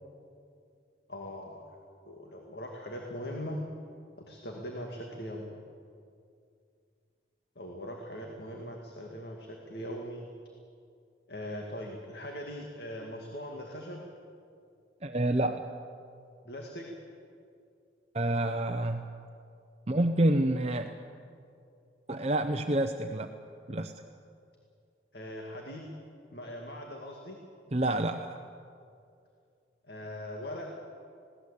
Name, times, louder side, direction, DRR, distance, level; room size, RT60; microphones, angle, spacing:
voice 1, 1.1-1.8 2.0-3.6 4.2-5.6 7.6-10.3 11.3-14.1 16.4-16.9 20.8-20.9 25.1-25.9 26.3-27.4 29.8-30.7, equal, 60° left, 1 dB, 2.1 m, -40 dB
voice 2, 15.0-15.6 18.1-19.1 19.9-20.9 22.1-23.3 23.7-23.9 27.7-28.4, right 1 dB, 35° right, 6 dB, 0.7 m, -28 dB
21.0 x 17.5 x 8.2 m, 2.4 s
head